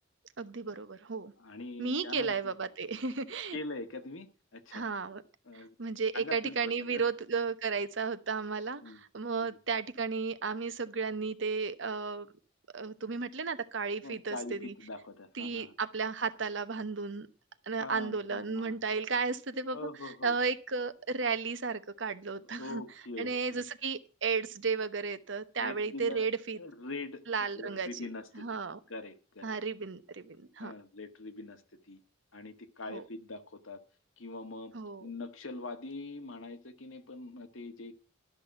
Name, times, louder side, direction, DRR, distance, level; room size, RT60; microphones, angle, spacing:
voice 1, 0.4-1.3 1.8-3.6 4.7-5.2 5.5-12.3 12.7-14.7 15.3-17.3 17.7-22.8 23.2-26.6 27.3-27.9 28.3-28.8 29.4-30.7 32.9-33.0 34.7-35.1, right 4 dB, 65° right, 12 dB, 1.0 m, -34 dB
voice 2, 1.4-2.5 3.5-4.3 4.5-4.8 5.4-5.7 6.1-7.0 8.8-9.0 9.4-9.6 14.0-15.7 17.8-18.8 19.7-20.4 22.4-23.6 25.6-26.2 26.5-28.6 28.9-29.6 30.6-31.6 31.9-32.0 32.3-33.8 34.2-34.7 35.0-37.9, left 2 dB, 85° left, 7 dB, 1.6 m, -43 dB
12.5 x 6.2 x 8.8 m, 0.37 s
head